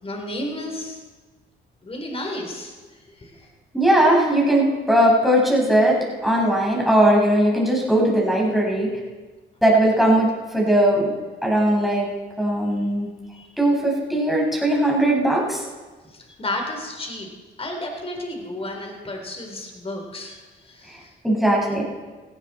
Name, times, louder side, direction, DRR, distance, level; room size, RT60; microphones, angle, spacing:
voice 1, 0.0-1.0 1.8-3.5 12.7-12.9 13.3-13.6 16.1-17.3 17.6-21.1, left 1 dB, 30° left, 2 dB, 3.9 m, -33 dB
voice 2, 3.7-8.9 9.6-10.3 10.5-11.1 11.4-12.1 12.4-13.1 13.6-15.6 21.2-21.8, right 1 dB, ahead, -3 dB, 5.6 m, -19 dB
17.0 x 16.5 x 4.4 m, 1.3 s
cardioid pair, 90°, 20 cm